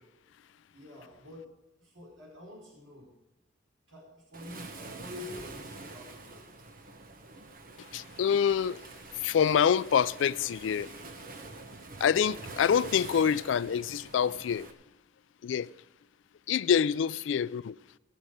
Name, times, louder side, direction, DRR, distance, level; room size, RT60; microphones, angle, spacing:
voice 1, 0.7-1.5 1.8-3.1 3.9-6.5, left 2 dB, 90° right, 4.5 m, -47 dB
Waves surf, 4.3-14.7, right 3 dB, 50° right, 1.2 m, -46 dB
voice 2, 7.9-8.8 9.1-10.9 12.0-14.7 15.4-15.7 16.5-17.8, left 8 dB, 75° left, 0.3 m, -26 dB
18.5 x 6.6 x 6.3 m
head